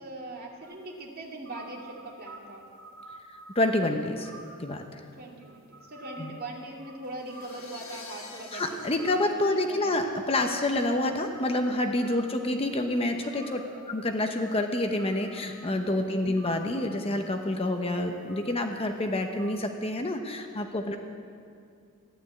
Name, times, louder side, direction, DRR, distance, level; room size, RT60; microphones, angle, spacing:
voice 1, 0.0-2.6 5.2-10.0 12.2-12.6 13.7-13.8 15.8-16.3 20.9-21.0, right 2 dB, 45° right, -1 dB, 2.5 m, -42 dB
sound 1, 0.6-0.8 1.4-3.9 4.1-5.0 5.4-7.9 8.4-9.8 10.3-12.7 13.1-15.8 16.4-17.8 18.3-18.9 19.1-19.5, right 2 dB, 65° right, 2.6 m, -50 dB
voice 2, 3.5-4.3 4.6-5.0 6.2-6.3 8.5-13.6 13.9-21.0, left 1 dB, 25° left, 5 dB, 0.9 m, -28 dB
sound 2, 7.0-10.3, left 3 dB, 65° left, 3.1 m, -47 dB
14.5 x 12.0 x 8.5 m, 2.4 s
head